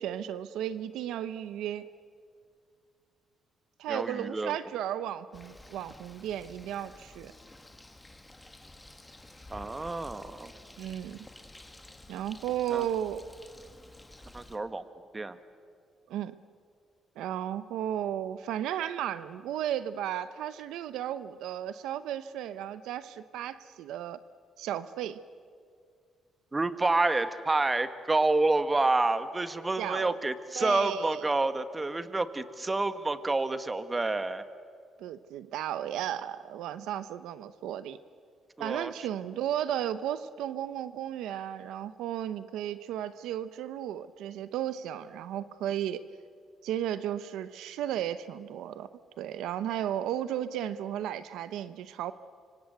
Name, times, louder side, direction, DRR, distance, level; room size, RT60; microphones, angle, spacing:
voice 1, 0.0-1.9 3.8-7.3 10.8-11.3 12.1-13.3 16.1-16.3 17.2-24.2 24.6-25.2 29.8-30.2 30.6-31.2 35.0-38.0 38.6-46.0 46.6-48.9 49.2-52.1, right 11 dB, 85° right, 13 dB, 0.8 m, -34 dB
voice 2, 3.9-4.6 9.5-10.5 12.7-12.9 14.3-14.8 15.1-15.4 26.5-34.4 38.6-38.9, right 2 dB, 20° right, 11 dB, 1.5 m, -28 dB
Bird, 5.3-14.6, left 2 dB, 10° left, 2.1 m, -51 dB
26.0 x 24.5 x 8.0 m, 2.1 s
cardioid pair, 90°, 0 cm